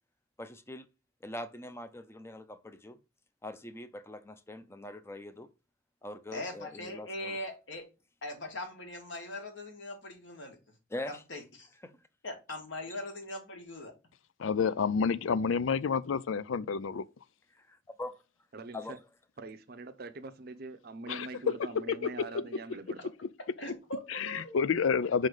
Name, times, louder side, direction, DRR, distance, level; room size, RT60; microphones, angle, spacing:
voice 1, 0.4-0.9 1.2-3.0 3.4-5.5 6.0-7.4 10.9-11.2 11.8-11.9 17.5-18.2 18.7-19.0 22.4-22.5, left 1 dB, 15° left, 0.6 m, -43 dB
voice 2, 6.3-7.8 8.2-10.6 11.1-11.7 12.2-13.9 23.6-24.6, left 1 dB, 70° left, 1.9 m, -41 dB
voice 3, 14.4-17.0 21.1-22.6 24.1-25.3, left 6 dB, 85° left, 0.4 m, -29 dB
voice 4, 18.5-19.0 19.4-23.0, right 3 dB, 50° right, 0.7 m, -43 dB
5.3 x 3.9 x 4.8 m
head